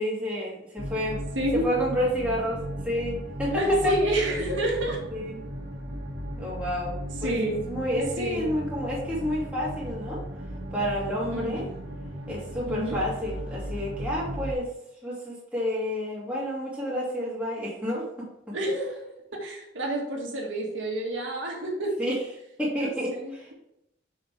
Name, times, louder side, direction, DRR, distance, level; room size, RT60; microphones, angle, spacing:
voice 1, 0.0-1.2 1.5-3.9 5.1-5.5 6.4-6.9 7.2-7.4 7.7-10.2 10.7-11.7 12.3-14.7 15.0-18.6 22.0-22.2 22.6-23.5, equal, 5° right, -6 dB, 2.5 m, -30 dB
sound 1, 0.8-14.5, equal, 60° right, 1.8 m, -36 dB
voice 2, 3.5-5.2 7.2-7.6 8.2-8.5 11.3-11.7 12.6-13.0 18.5-19.0 19.4-21.9 22.7-23.5, right 1 dB, 80° right, -1 dB, 1.8 m, -29 dB
7.0 x 5.6 x 3.4 m, 0.82 s
head